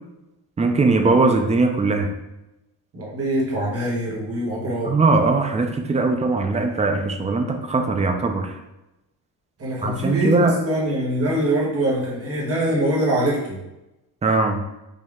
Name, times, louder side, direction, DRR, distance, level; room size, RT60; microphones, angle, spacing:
voice 1, 0.6-2.1 4.9-8.5 9.8-10.5 14.2-14.6, right 3 dB, 20° right, 4 dB, 0.4 m, -20 dB
voice 2, 2.9-5.0 9.6-13.6, right 1 dB, 35° right, -5 dB, 1.4 m, -23 dB
5.3 x 2.8 x 3.6 m, 0.95 s
cardioid pair, 155°, 38 cm